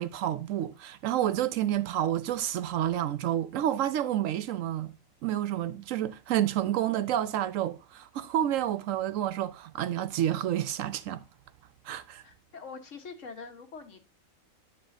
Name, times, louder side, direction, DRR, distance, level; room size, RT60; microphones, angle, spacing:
voice 1, 0.0-4.9 5.2-11.2 11.8-12.2, right 11 dB, 75° right, 0.9 m, -29 dB
voice 2, 12.2-14.1, left 4 dB, 65° left, 1.5 m, -44 dB
9.6 x 6.8 x 2.6 m
omnidirectional pair, 1.4 m